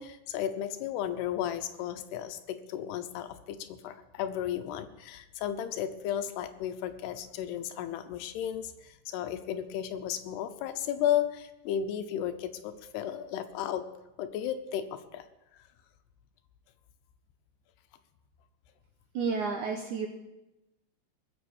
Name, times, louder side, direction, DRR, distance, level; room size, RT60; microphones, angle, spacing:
voice 1, 0.0-13.9 14.2-15.2, left 10 dB, 80° left, 10 dB, 2.8 m, -34 dB
voice 2, 19.1-20.1, right 5 dB, 75° right, 3 dB, 1.8 m, -31 dB
19.5 x 7.5 x 7.1 m, 0.97 s
omnidirectional pair, 4.8 m